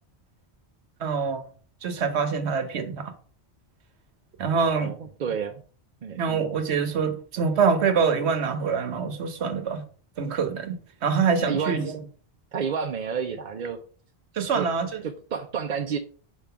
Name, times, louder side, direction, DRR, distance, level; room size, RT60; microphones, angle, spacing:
voice 1, 1.0-1.4 1.8-3.1 4.4-5.0 6.2-9.8 10.2-12.0 14.3-15.0, right 5 dB, 90° right, 1.2 m, -25 dB
voice 2, 4.7-5.6 6.0-6.2 11.4-12.0 12.5-13.8 14.5-14.7 15.0-16.0, right 6 dB, 55° right, 0.7 m, -30 dB
4.9 x 3.7 x 5.7 m
omnidirectional pair, 1.1 m